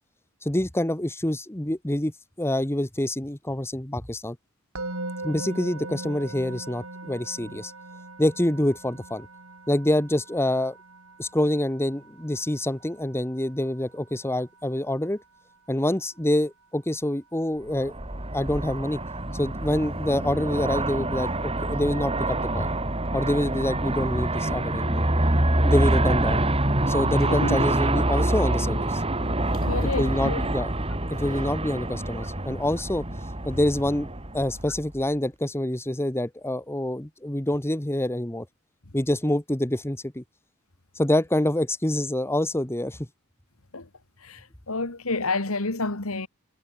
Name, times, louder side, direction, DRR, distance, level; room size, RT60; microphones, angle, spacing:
voice 1, 0.4-4.4 5.2-7.7 8.2-9.3 9.7-10.8 11.2-15.2 15.7-17.9 18.3-19.0 19.3-22.7 23.1-25.1 25.6-26.5 26.9-29.0 29.8-30.7 31.1-33.0 33.4-34.1 34.3-38.5 38.9-40.2 41.0-43.1, left 1 dB, 10° left, 1.5 m, -26 dB
Musical instrument, 4.7-15.9, right 2 dB, 70° right, 6.4 m, -41 dB
Aircraft, 17.7-35.0, right 1 dB, 25° right, 3.7 m, -26 dB
voice 2, 27.3-27.6 29.2-30.5 43.7-43.9 44.2-46.3, left 3 dB, 70° left, 2.3 m, -29 dB
head